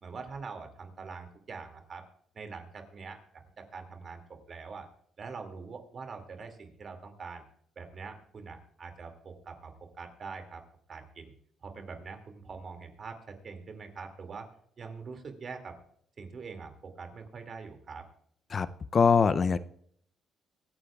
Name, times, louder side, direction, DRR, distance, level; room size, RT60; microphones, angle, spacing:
voice 1, 0.0-2.0 2.3-4.2 4.5-4.9 5.2-7.4 7.8-9.7 10.0-10.6 10.9-11.3 11.6-14.5 14.8-15.8 16.2-18.0, right 5 dB, 50° right, 5 dB, 2.3 m, -44 dB
voice 2, 18.9-19.6, left 5 dB, 45° left, 15 dB, 0.5 m, -22 dB
24.5 x 9.9 x 2.4 m, 0.66 s
cardioid pair, 90°, 0 cm